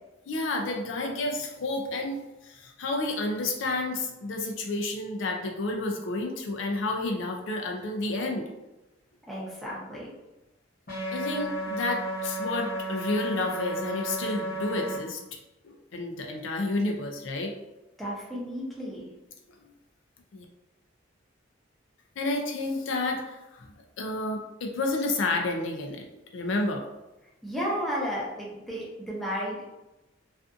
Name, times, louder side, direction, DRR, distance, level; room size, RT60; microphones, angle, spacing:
voice 1, 0.3-8.5 11.1-15.2 15.6-17.5 20.3-20.4 22.2-26.1 26.3-26.9, left 2 dB, 70° left, 2 dB, 0.4 m, -30 dB
voice 2, 9.3-10.1 18.0-19.0 27.4-29.7, equal, ahead, -7 dB, 0.7 m, -33 dB
sound 1, 10.9-15.0, right 1 dB, 50° left, 0.9 m, -33 dB
2.5 x 2.4 x 2.4 m, 0.98 s
head